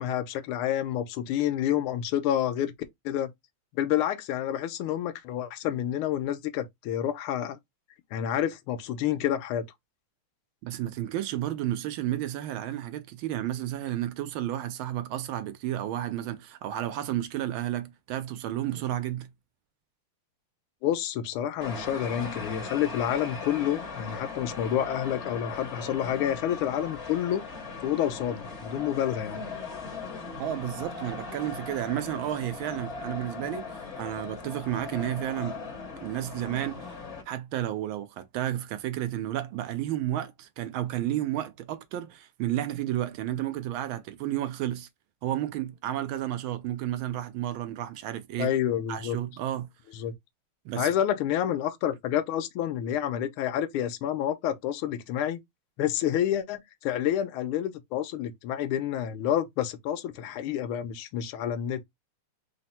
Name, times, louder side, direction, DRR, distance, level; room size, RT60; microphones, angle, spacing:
voice 1, 0.0-2.7 3.0-3.3 3.7-7.6 8.1-9.6 20.8-27.5 27.8-29.4 48.4-49.2 49.9-50.1 50.7-55.4 55.8-61.8, left 10 dB, 85° left, 1.5 m, -29 dB
voice 2, 10.6-19.3 30.4-35.6 36.0-36.9 37.3-44.9 45.2-48.5 48.9-49.7 50.6-50.9, right 12 dB, 75° right, 1.3 m, -32 dB
sound 1, 21.6-37.2, left 4 dB, 40° left, 1.3 m, -39 dB
4.1 x 2.0 x 4.1 m
omnidirectional pair, 2.3 m